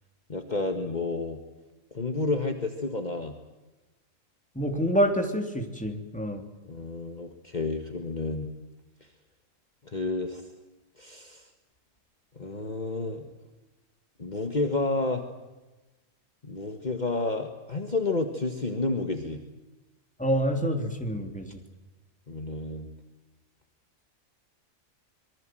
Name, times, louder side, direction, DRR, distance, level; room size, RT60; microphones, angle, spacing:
voice 1, 0.3-1.4 1.9-3.3 6.6-8.5 9.8-10.5 11.0-11.5 12.4-13.2 14.2-15.2 16.4-19.4 22.3-22.9, left 3 dB, 35° left, 5 dB, 1.9 m, -30 dB
voice 2, 4.5-6.5 20.2-21.6, equal, 5° left, 3 dB, 3.4 m, -27 dB
26.0 x 23.5 x 7.8 m, 1.1 s
omnidirectional pair, 1.4 m